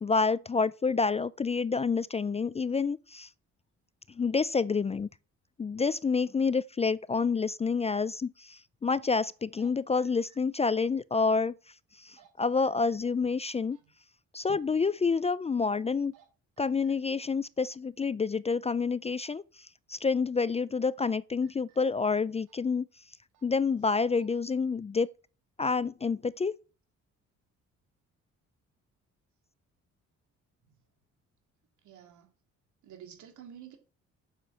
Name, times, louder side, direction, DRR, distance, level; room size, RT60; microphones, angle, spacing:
voice 1, 0.0-3.3 4.1-5.1 5.6-11.5 12.0-13.8 14.3-16.1 16.6-22.9 23.4-25.1 25.6-26.5, left 4 dB, 20° left, 0.4 m, -28 dB
sound 1, 9.4-9.7 10.0-10.4 12.0-12.3 12.6-13.0 13.7-13.8 14.8-15.0 15.9-16.3 16.6-16.9 19.2-19.4 20.7-21.1 21.4-21.8 22.4-22.7 23.3-23.5 23.9-24.3, right 10 dB, 90° right, 4.2 m, -61 dB
voice 2, 31.8-32.3 32.8-33.8, right 9 dB, 75° right, 3.0 m, -49 dB
8.8 x 6.8 x 6.3 m
cardioid pair, 90°, 30 cm